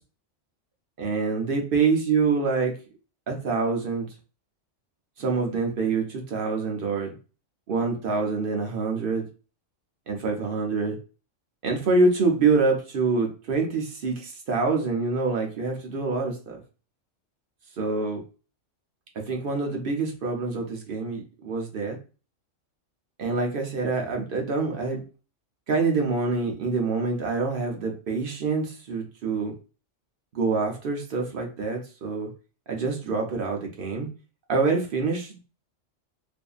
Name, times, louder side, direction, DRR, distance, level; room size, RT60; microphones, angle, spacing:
voice 1, 1.0-2.7 3.3-4.1 5.2-7.1 7.7-9.2 10.1-11.0 11.6-16.6 17.8-18.2 19.3-22.0 23.2-25.0 25.7-29.5 30.3-32.3 32.7-34.1 34.5-35.4, right 4 dB, 55° right, 2 dB, 0.7 m, -26 dB
2.6 x 2.5 x 2.3 m, 0.34 s
omnidirectional pair, 1.3 m